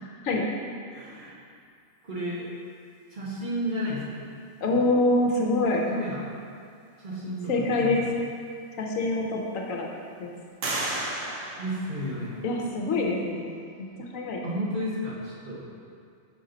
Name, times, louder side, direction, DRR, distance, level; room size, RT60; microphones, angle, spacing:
voice 1, 0.9-1.4 2.0-2.5 3.1-4.3 5.8-6.2 7.0-8.0 11.6-12.4 14.4-15.6, equal, 40° right, -7 dB, 1.2 m, -32 dB
voice 2, 4.6-5.8 7.5-8.0 8.8-9.4 9.7-9.9 10.2-10.3 12.4-13.5 14.1-14.4, left 2 dB, 75° left, 0 dB, 1.1 m, -25 dB
sound 1, 8.4-8.5 9.0-9.7 10.6-12.6, right 2 dB, 65° right, 1.2 m, -34 dB
5.6 x 5.3 x 3.9 m, 2.3 s
omnidirectional pair, 1.4 m